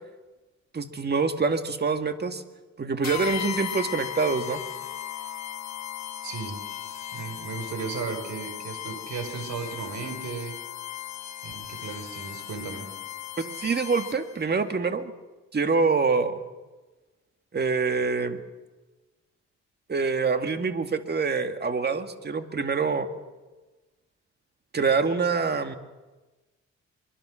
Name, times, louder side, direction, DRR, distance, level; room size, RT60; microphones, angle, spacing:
voice 1, 0.7-2.4 2.8-4.6 13.4-15.1 15.5-16.4 17.5-18.4 19.9-23.1 24.7-25.8, right 4 dB, 35° right, 7 dB, 2.1 m, -25 dB
sound 1, 3.0-14.4, left 10 dB, 60° left, 1.4 m, -37 dB
voice 2, 6.2-6.6 7.1-10.5 11.4-12.9, right 5 dB, 65° right, 7 dB, 5.0 m, -35 dB
24.0 x 23.5 x 6.5 m, 1.2 s
cardioid pair, 90°, 30 cm